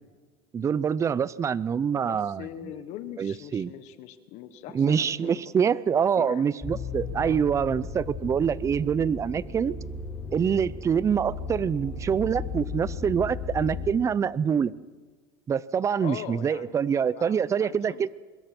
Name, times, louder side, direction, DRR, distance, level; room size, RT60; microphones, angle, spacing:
voice 1, 0.5-2.5 3.2-3.7 4.7-9.7 10.3-14.7 15.5-18.1, right 7 dB, 20° right, 20 dB, 0.6 m, -25 dB
voice 2, 1.9-6.4 7.2-7.4 16.0-18.1, left 11 dB, 55° left, 11 dB, 1.4 m, -42 dB
sound 1, 6.6-13.9, left 4 dB, 10° left, 4.9 m, -36 dB
25.0 x 21.5 x 6.1 m, 1.4 s
supercardioid pair, 135°, 14 cm